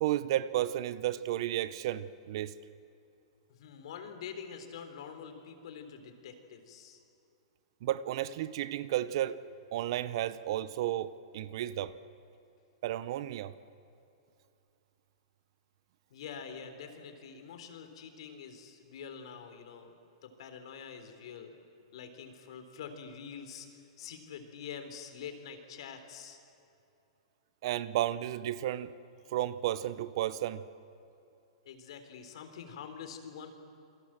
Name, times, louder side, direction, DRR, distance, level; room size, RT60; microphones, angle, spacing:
voice 1, 0.0-2.5 7.8-9.4 9.7-11.9 12.8-13.5 27.6-28.9 29.3-30.6, right 13 dB, 50° right, 0.9 m, -32 dB
voice 2, 3.6-7.0 16.1-19.9 20.2-21.5 21.9-26.4 31.7-33.6, left 7 dB, 60° left, 3.7 m, -46 dB
28.5 x 23.0 x 7.6 m
hypercardioid pair, 155°, 3 cm